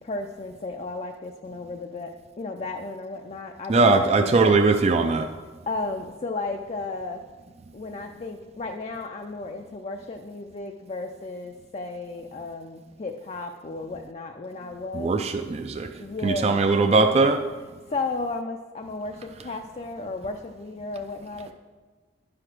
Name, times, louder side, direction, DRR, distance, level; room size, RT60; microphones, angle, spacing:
voice 1, 0.0-4.5 5.7-7.2 7.7-15.2 16.0-16.7 17.9-21.5, left 3 dB, 35° left, 3 dB, 0.4 m, -34 dB
voice 2, 3.7-5.3 14.9-15.9 16.2-17.5, right 3 dB, 30° right, 6 dB, 0.4 m, -20 dB
11.0 x 4.9 x 5.9 m, 1.3 s
head